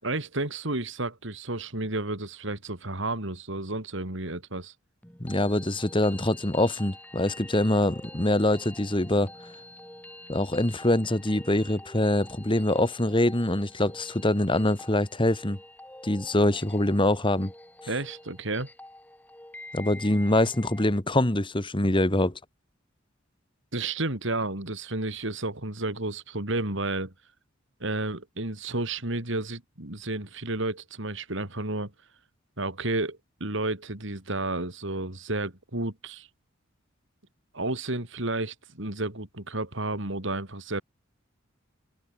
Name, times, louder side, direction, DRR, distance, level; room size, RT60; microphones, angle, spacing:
voice 1, 0.0-4.7 17.9-18.7 23.7-27.1 27.8-31.9 32.6-36.3 37.5-40.8, right 2 dB, 65° right, 3.7 m, -31 dB
sound 1, 5.0-21.0, left 1 dB, 10° left, 5.7 m, -47 dB
voice 2, 5.2-9.3 10.3-15.6 16.0-17.5 19.7-22.3, left 1 dB, 25° left, 2.1 m, -24 dB
open air
head